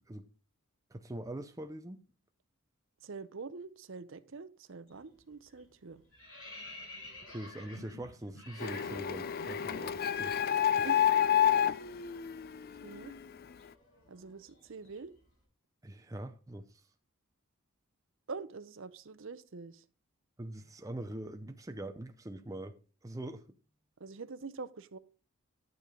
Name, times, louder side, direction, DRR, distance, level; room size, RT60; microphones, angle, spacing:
voice 1, 0.9-2.0 7.3-10.9 15.8-16.8 20.4-22.8 23.0-23.4, right 1 dB, 15° right, 0.5 m, -43 dB
voice 2, 3.0-6.0 10.8-11.0 12.8-13.1 14.1-15.1 18.3-19.8 24.0-25.0, right 4 dB, 60° right, 0.6 m, -45 dB
sound 1, 4.9-5.2 5.5-10.4 10.7-10.9 11.2-15.2, left 2 dB, 75° left, 5.0 m, -52 dB
Printer, 8.6-13.2, left 9 dB, 45° left, 0.4 m, -29 dB
12.0 x 6.7 x 3.7 m
head